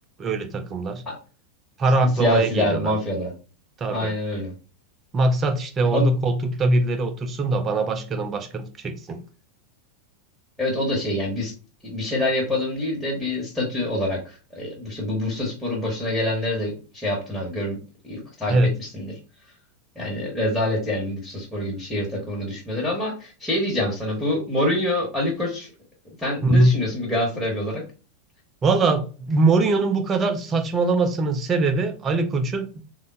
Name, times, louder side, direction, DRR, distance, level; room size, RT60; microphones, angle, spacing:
voice 1, 0.2-1.0 1.8-2.9 3.8-4.1 5.1-9.2 18.5-18.7 26.4-26.7 28.6-32.8, right 2 dB, 25° right, 0.5 m, -22 dB
voice 2, 2.1-3.3 3.9-4.5 5.9-6.1 10.6-11.5 11.8-17.8 18.0-19.1 19.9-25.7 26.2-27.8, left 1 dB, 5° left, 1.0 m, -26 dB
3.5 x 2.2 x 3.9 m
figure-of-eight pair, 90°, 0 cm